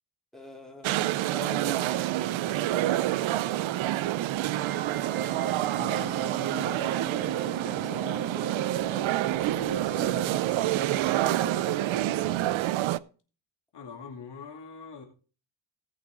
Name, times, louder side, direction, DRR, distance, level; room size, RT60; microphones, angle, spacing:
voice 1, 0.3-1.0 1.3-4.0 6.9-9.0 11.7-12.1, left 2 dB, ahead, 4.1 m, -46 dB
sound 1, 0.8-13.0, right 14 dB, 75° right, 0.6 m, -28 dB
sound 2, 4.5-12.5, right 4 dB, 25° right, 0.7 m, -38 dB
voice 2, 5.8-6.7 9.4-11.1 13.7-15.1, left 5 dB, 60° left, 2.5 m, -44 dB
18.5 x 6.1 x 3.8 m
cardioid pair, 95°, 47 cm